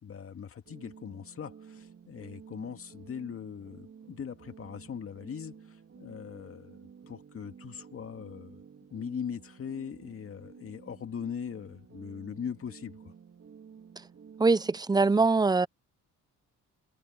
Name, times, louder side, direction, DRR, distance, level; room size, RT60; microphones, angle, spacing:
voice 1, 0.0-8.6 8.9-13.1, left 7 dB, 45° left, 2.2 m, -40 dB
sound 1, 0.6-14.8, right 7 dB, 45° right, 4.3 m, -52 dB
voice 2, 14.4-15.7, right 3 dB, 15° right, 0.6 m, -23 dB
cardioid pair, 110°, 30 cm